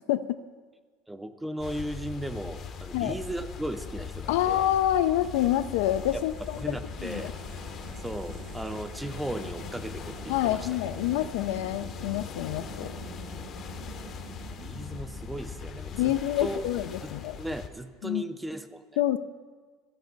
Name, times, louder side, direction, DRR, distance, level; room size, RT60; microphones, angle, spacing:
voice 1, 1.1-4.7 6.1-6.2 6.5-7.3 8.0-10.7 14.5-16.7 17.0-17.1 17.4-18.9, right 1 dB, 5° right, 11 dB, 0.4 m, -36 dB
sound 1, 1.6-17.7, left 6 dB, 40° left, 0.7 m, -40 dB
voice 2, 4.3-7.3 10.3-12.9 15.9-17.4 18.0-18.2 19.0-19.2, left 13 dB, 85° left, 12 dB, 0.4 m, -27 dB
sound 2, 5.1-16.2, right 10 dB, 65° right, 0.5 m, -48 dB
14.5 x 5.2 x 3.9 m, 1.5 s
cardioid pair, 145°, 0 cm